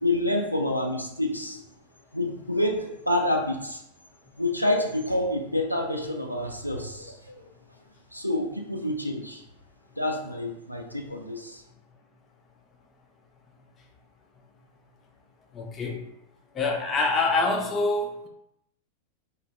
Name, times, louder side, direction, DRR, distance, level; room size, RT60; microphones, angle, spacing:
voice 1, 0.0-1.6 2.1-3.8 4.4-7.2 8.1-9.4 10.0-11.6, left 1 dB, 90° left, 1 dB, 0.3 m, -28 dB
voice 2, 15.5-16.0 16.5-18.3, left 3 dB, 20° left, 1 dB, 0.5 m, -25 dB
2.5 x 2.2 x 3.1 m, 0.83 s
figure-of-eight pair, 90°, 0 cm